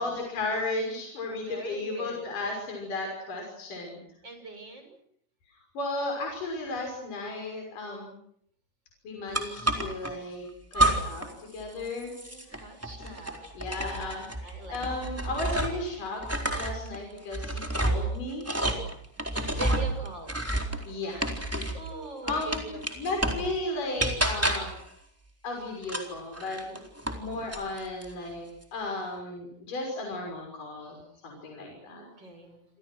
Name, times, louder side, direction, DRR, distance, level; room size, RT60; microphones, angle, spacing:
voice 1, 0.0-4.0 5.7-8.2 9.0-10.5 10.7-12.1 13.0-13.1 13.5-16.3 16.6-18.5 20.9-21.2 21.5-21.7 22.2-24.7 25.4-26.8 27.2-32.1, left 2 dB, 50° left, 1 dB, 7.7 m, -35 dB
voice 2, 1.4-2.2 4.2-5.0 12.0-15.2 19.5-20.4 21.7-23.0 30.8-31.0 31.8-32.7, right 2 dB, 25° right, 6 dB, 7.1 m, -43 dB
sound 1, 9.3-10.1 10.7-11.3 11.6-15.9 16.2-21.9 22.3-23.5 24.0-24.8 25.8-27.2 27.5-28.1, right 1 dB, 5° right, 3.6 m, -30 dB
29.0 x 27.0 x 6.4 m, 0.68 s
omnidirectional pair, 4.7 m